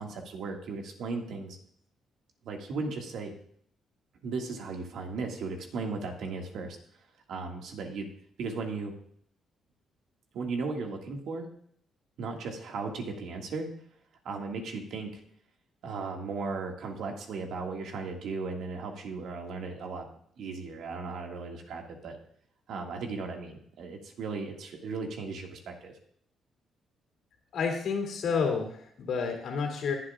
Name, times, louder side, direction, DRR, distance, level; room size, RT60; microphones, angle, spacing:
voice 1, 0.0-1.6 2.4-3.3 4.2-6.8 7.3-8.1 8.4-8.9 10.3-11.5 12.2-13.7 14.2-15.2 15.8-20.1 20.4-22.2 22.7-25.9, right 4 dB, 75° right, 2 dB, 1.9 m, -36 dB
voice 2, 27.5-29.9, left 5 dB, 70° left, 2 dB, 2.7 m, -30 dB
21.0 x 7.7 x 2.4 m, 0.65 s
cardioid pair, 90°, 0 cm